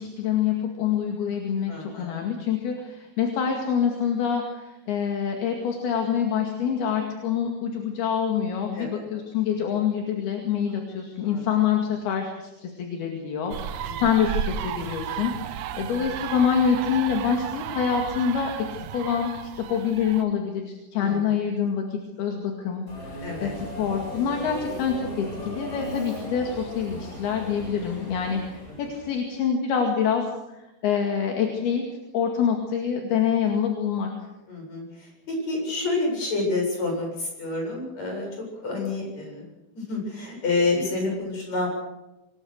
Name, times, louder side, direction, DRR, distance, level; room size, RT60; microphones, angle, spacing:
voice 1, 0.0-18.5 18.9-31.8 32.1-34.1, left 7 dB, 70° left, 2 dB, 4.1 m, -26 dB
voice 2, 1.7-2.1 8.8-9.0 11.2-11.4 13.8-13.9 21.0-21.2 23.2-23.5 34.5-34.8 35.3-38.3 38.6-39.4 39.8-41.7, left 3 dB, 40° left, 1 dB, 9.2 m, -28 dB
sound 1, 13.5-20.2, right 9 dB, 75° right, 1.9 m, -33 dB
Subway metro underground, 22.9-29.1, equal, 20° left, 6.8 m, -37 dB
26.0 x 21.0 x 6.6 m, 1.0 s
omnidirectional pair, 4.7 m